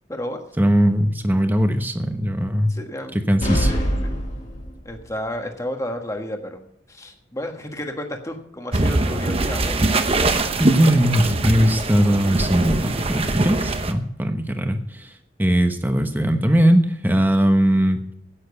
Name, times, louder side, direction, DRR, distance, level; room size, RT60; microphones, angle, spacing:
voice 1, 0.6-2.7 3.1-3.7 10.6-15.1 15.4-18.1, equal, 10° right, 6 dB, 1.1 m, -19 dB
voice 2, 2.7-3.1 3.7-4.1 4.8-6.6 6.9-9.8, left 1 dB, 15° left, 4 dB, 1.4 m, -32 dB
sound 1, 3.4-5.1, equal, 40° left, 2.5 m, -24 dB
sound 2, 8.7-13.9, right 2 dB, 30° right, 0.8 m, -22 dB
10.0 x 9.2 x 8.0 m, 0.75 s
head